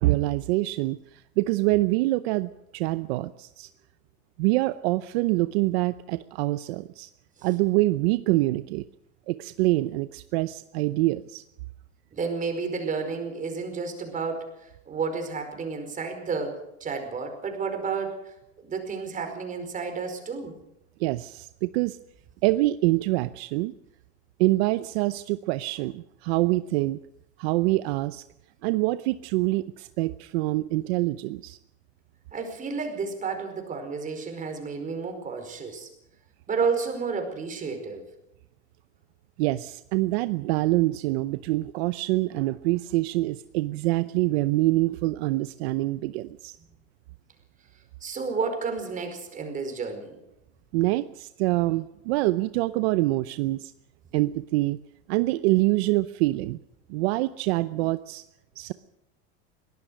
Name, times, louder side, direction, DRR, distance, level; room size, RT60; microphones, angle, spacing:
voice 1, 0.0-3.7 4.4-7.1 7.4-8.8 9.3-11.4 21.0-22.0 22.4-23.7 24.4-27.0 27.4-28.2 28.6-31.6 39.4-46.6 50.7-53.7 54.1-54.8 55.1-56.6 56.9-58.2 58.6-58.7, right 19 dB, 70° right, 13 dB, 0.8 m, -25 dB
voice 2, 12.1-18.3 18.6-20.5 32.3-35.9 36.5-38.0 48.0-50.2, right 5 dB, 25° right, 6 dB, 4.9 m, -31 dB
22.5 x 18.0 x 6.5 m, 0.85 s
supercardioid pair, 135°, 33 cm